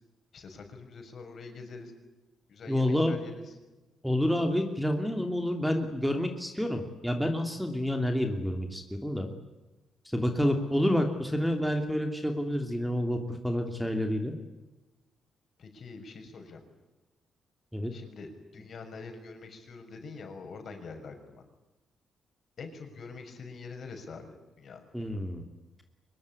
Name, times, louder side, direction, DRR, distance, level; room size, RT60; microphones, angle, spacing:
voice 1, 0.3-1.9 2.5-3.5 15.6-16.6 17.9-21.4 22.6-24.8, left 4 dB, 50° left, 5 dB, 6.3 m, -45 dB
voice 2, 2.7-3.1 4.0-9.3 10.0-14.3 17.7-17.9 24.9-25.4, left 1 dB, ahead, 3 dB, 2.9 m, -28 dB
24.5 x 21.5 x 9.8 m, 1.1 s
cardioid pair, 120°, 0 cm